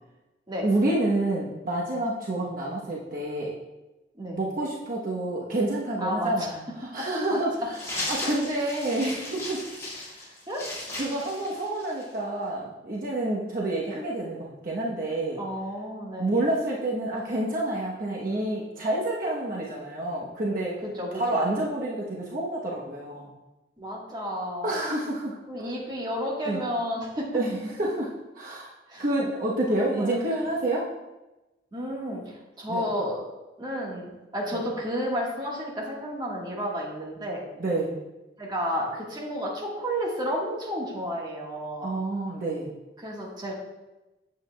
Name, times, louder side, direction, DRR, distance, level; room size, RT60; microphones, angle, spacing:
voice 1, 0.6-3.5 4.3-6.5 6.8-7.5 8.1-9.6 9.9-10.1 10.9-15.4 16.2-20.8 21.1-23.3 24.6-25.4 26.5-26.6 27.3-27.5 27.8-28.1 28.3-28.7 29.0-30.9 32.7-32.8 37.6-37.9 41.8-42.7, right 1 dB, 50° right, -4 dB, 0.9 m, -28 dB
voice 2, 6.0-6.5 7.3-7.4 10.5-10.6 15.4-16.4 20.8-21.4 23.8-24.7 25.5-27.3 28.9-29.0 29.8-30.5 31.7-33.2 33.6-37.4 38.4-41.9 43.0-43.5, equal, 25° right, -3 dB, 1.4 m, -32 dB
sound 1, 7.7-12.2, left 1 dB, 15° left, 2.2 m, -36 dB
8.5 x 7.7 x 2.2 m, 1.0 s
head